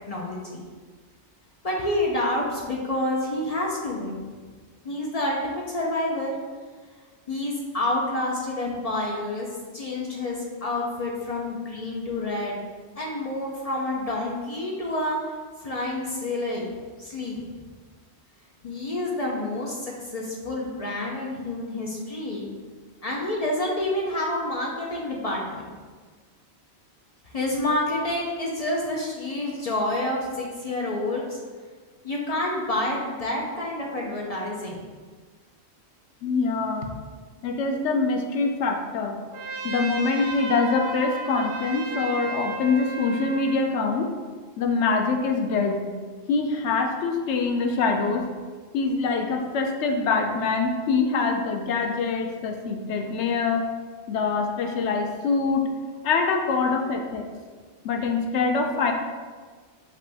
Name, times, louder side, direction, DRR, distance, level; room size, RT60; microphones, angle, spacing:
voice 1, 0.1-0.6 1.6-4.2 4.8-6.3 7.3-9.5 9.7-12.6 13.0-15.2 15.6-16.7 17.0-17.4 18.6-22.5 23.0-25.7 27.3-31.4 32.0-34.8, left 1 dB, 45° left, -3 dB, 0.5 m, -28 dB
voice 2, 36.2-36.9 37.4-39.2 39.6-44.1 44.6-45.8 46.3-48.3 48.7-53.7 54.1-55.6 56.0-57.3 57.8-58.9, left 4 dB, 80° left, 4 dB, 0.9 m, -24 dB
Trumpet, 39.3-43.6, right 3 dB, 70° right, 0.8 m, -34 dB
5.5 x 2.6 x 3.3 m, 1.5 s
omnidirectional pair, 1.2 m